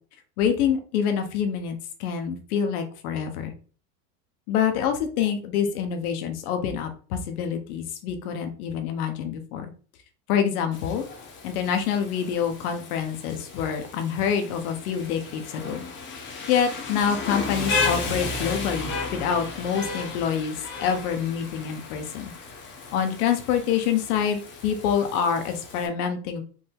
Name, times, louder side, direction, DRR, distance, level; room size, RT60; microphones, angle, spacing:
voice 1, 0.4-3.5 4.5-9.7 10.3-11.1 11.4-15.8 16.5-22.3 22.9-26.4, left 7 dB, 70° left, 6 dB, 1.2 m, -26 dB
Rain, 10.7-25.9, left 4 dB, 25° left, 1.0 m, -34 dB
5.0 x 2.8 x 3.7 m, 0.39 s
supercardioid pair, 155°, 45 cm